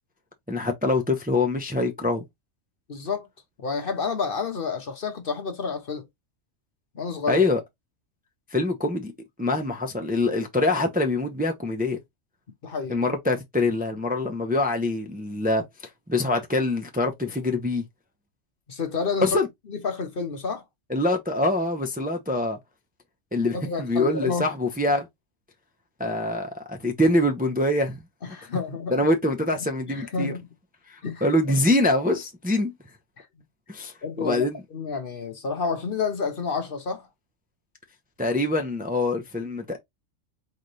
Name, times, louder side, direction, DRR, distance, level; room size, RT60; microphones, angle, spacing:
voice 1, 0.5-2.2 7.3-7.6 8.5-9.1 9.4-12.0 12.9-15.6 16.1-17.8 19.2-19.5 20.9-22.6 23.3-25.1 26.0-28.0 28.9-30.3 30.9-32.7 33.7-33.9 34.2-34.6 38.2-39.8, left 2 dB, 10° right, 0.6 m, -24 dB
voice 2, 2.9-3.3 3.6-6.0 6.9-7.4 12.6-13.0 18.7-19.4 19.7-20.6 23.5-24.5 28.2-29.1 29.9-30.5 31.0-31.3 33.2-33.3 34.0-34.4 34.7-37.1, left 5 dB, 50° left, 1.0 m, -29 dB
4.1 x 4.0 x 3.2 m
omnidirectional pair, 1.3 m